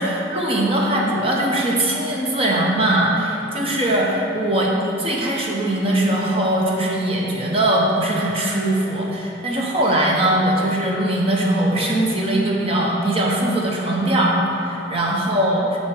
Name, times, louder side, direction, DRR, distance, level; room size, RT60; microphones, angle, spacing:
voice 1, 0.0-4.7 5.0-15.6, right 1 dB, 30° right, -3 dB, 1.0 m, -20 dB
6.5 x 5.7 x 4.9 m, 2.9 s
head